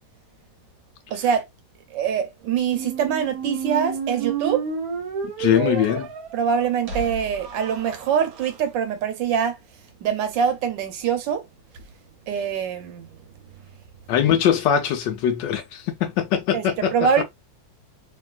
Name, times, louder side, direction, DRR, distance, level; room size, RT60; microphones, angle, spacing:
voice 1, 1.1-1.4 1.9-4.6 5.5-5.8 6.3-9.6 10.0-11.4 12.3-13.1 16.5-17.2, right 7 dB, 80° right, 1.3 m, -24 dB
sound 1, 2.6-8.5, right 6 dB, 60° right, 1.1 m, -31 dB
voice 2, 5.4-6.1 14.1-16.9, left 9 dB, 75° left, 1.2 m, -21 dB
3.0 x 2.7 x 2.3 m
omnidirectional pair, 2.0 m